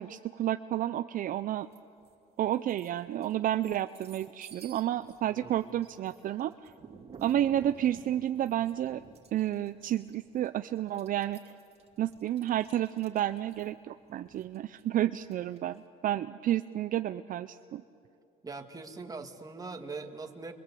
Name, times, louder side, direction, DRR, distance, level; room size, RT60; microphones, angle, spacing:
voice 1, 0.0-1.7 2.4-6.7 7.2-9.0 9.3-11.4 12.0-17.8, right 12 dB, 55° right, 11 dB, 0.6 m, -31 dB
sound 1, 1.7-2.1 2.5-15.8, right 5 dB, 35° right, 2.7 m, -53 dB
voice 2, 5.3-5.7 18.4-20.5, right 3 dB, 20° right, 4 dB, 2.1 m, -42 dB
30.0 x 23.0 x 8.4 m, 2.6 s
cardioid pair, 110°, 17 cm